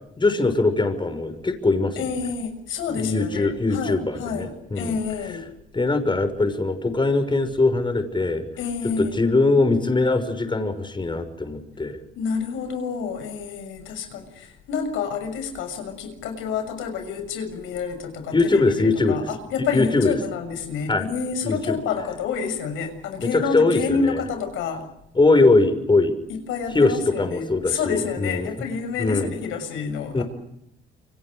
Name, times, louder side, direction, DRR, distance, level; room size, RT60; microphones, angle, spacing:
voice 1, 0.2-2.0 2.9-5.0 5.7-8.4 9.0-12.0 18.3-19.2 19.6-20.1 20.9-21.1 21.4-21.8 23.2-24.2 25.2-26.1 26.7-28.7 29.0-29.3 30.1-30.2, left 3 dB, 25° left, 8 dB, 6.0 m, -21 dB
voice 2, 2.0-5.5 8.6-9.1 12.1-24.8 26.3-30.2, left 5 dB, 90° left, 7 dB, 6.6 m, -29 dB
29.0 x 25.0 x 6.5 m, 0.79 s
cardioid pair, 90°, 20 cm